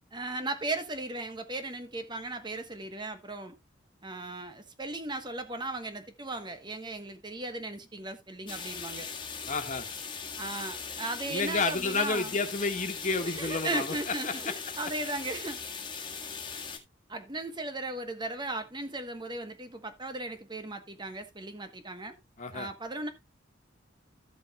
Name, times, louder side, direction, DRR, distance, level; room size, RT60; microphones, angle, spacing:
voice 1, 0.1-3.5 4.0-9.1 10.4-12.4 13.2-15.6 17.1-22.1 22.5-23.1, right 2 dB, 25° right, 1.2 m, -37 dB
sound 1, 8.5-16.8, left 5 dB, 25° left, 1.8 m, -39 dB
voice 2, 9.5-9.9 11.3-13.9 14.2-14.5 22.4-22.7, left 4 dB, 40° left, 1.7 m, -30 dB
14.0 x 7.7 x 2.3 m
head